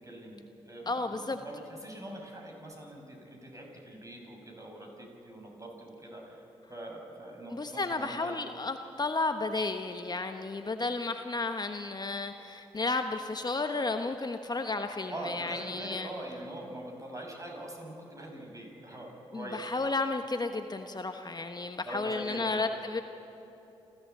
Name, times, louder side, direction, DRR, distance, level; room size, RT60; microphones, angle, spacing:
voice 1, 0.0-6.4 6.7-8.4 14.9-19.6 21.8-22.7, right 1 dB, 25° right, 1 dB, 6.3 m, -43 dB
voice 2, 0.9-1.4 7.5-16.1 19.3-23.0, left 3 dB, 35° left, 7 dB, 1.1 m, -33 dB
28.5 x 13.5 x 8.0 m, 3.0 s
hypercardioid pair, 40°, 13 cm